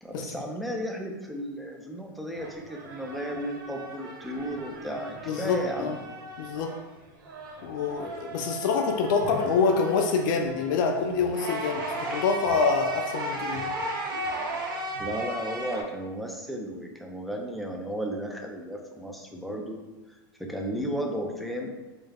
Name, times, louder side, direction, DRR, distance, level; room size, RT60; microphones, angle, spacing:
voice 1, 0.0-5.9 15.0-19.8 20.4-21.7, equal, ahead, 1 dB, 0.3 m, -34 dB
sound 1, 2.3-6.9 7.2-15.8, right 1 dB, 80° right, 0.7 m, -36 dB
voice 2, 5.3-6.0 6.4-6.8 7.6-13.7, left 5 dB, 70° left, 3 dB, 0.4 m, -26 dB
3.4 x 2.1 x 3.3 m, 1.2 s
supercardioid pair, 135°, 11 cm